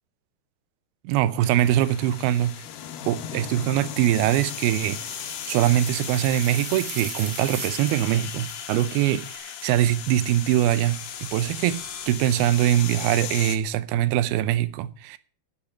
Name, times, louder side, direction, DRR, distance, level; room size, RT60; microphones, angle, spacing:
voice 1, 1.0-2.6 3.1-5.0 5.5-15.2, right 12 dB, 85° right, 2.6 m, -23 dB
sound 1, 1.4-13.6, left 10 dB, 85° left, 3.0 m, -37 dB
sound 2, 4.4-9.4, right 5 dB, 55° right, 1.5 m, -40 dB
sound 3, 5.1-12.1, left 4 dB, 50° left, 3.6 m, -43 dB
8.9 x 7.1 x 8.6 m
omnidirectional pair, 4.4 m